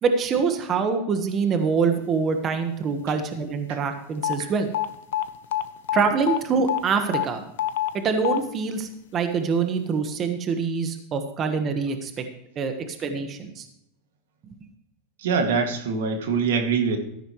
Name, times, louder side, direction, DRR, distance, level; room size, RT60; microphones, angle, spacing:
voice 1, 0.0-4.7 5.9-7.4 7.9-12.2 12.5-13.6, right 5 dB, 30° right, 7 dB, 1.3 m, -25 dB
sound 1, 4.2-4.3 4.7-4.9 5.1-5.6 5.9-6.0 6.3-6.4 6.7-6.8 7.1-7.2 7.6-7.9 8.2-8.4, left 13 dB, 80° left, 0.8 m, -24 dB
voice 2, 15.2-17.0, right 5 dB, 85° right, 5 dB, 2.1 m, -24 dB
13.5 x 10.5 x 3.1 m, 0.79 s
supercardioid pair, 135°, 0 cm